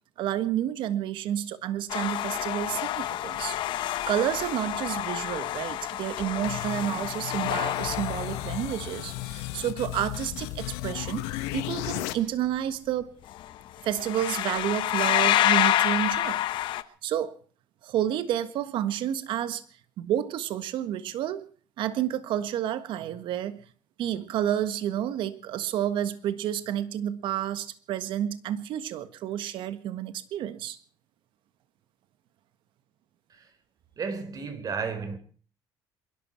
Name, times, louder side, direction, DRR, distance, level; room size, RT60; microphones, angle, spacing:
voice 1, 0.2-3.6 4.1-13.1 13.8-16.4 17.0-17.4 17.8-19.6 20.0-21.5 21.8-23.6 24.0-30.8, right 11 dB, 70° right, 1.5 m, -30 dB
sound 1, 1.9-9.0 13.3-13.5 13.8-16.8, left 13 dB, 65° left, 1.2 m, -28 dB
sound 2, 5.9-12.1, left 15 dB, 85° left, 1.7 m, -35 dB
voice 2, 34.0-35.2, right 5 dB, 45° right, 4.2 m, -33 dB
27.5 x 12.0 x 4.5 m
supercardioid pair, 80°, 9 cm